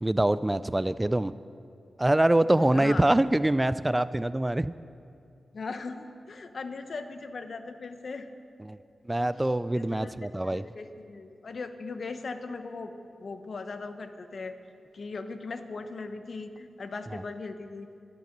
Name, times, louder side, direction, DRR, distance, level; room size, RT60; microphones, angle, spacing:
voice 1, 0.0-1.3 2.0-4.7 8.6-8.8 9.1-10.6 17.1-17.2, right 1 dB, 15° right, 15 dB, 0.4 m, -24 dB
voice 2, 2.5-3.0 5.5-8.3 9.2-10.2 10.4-12.9 13.2-14.5 14.9-17.9, left 4 dB, 65° left, 8 dB, 1.0 m, -39 dB
13.0 x 12.5 x 7.3 m, 2.6 s
cardioid pair, 65°, 0 cm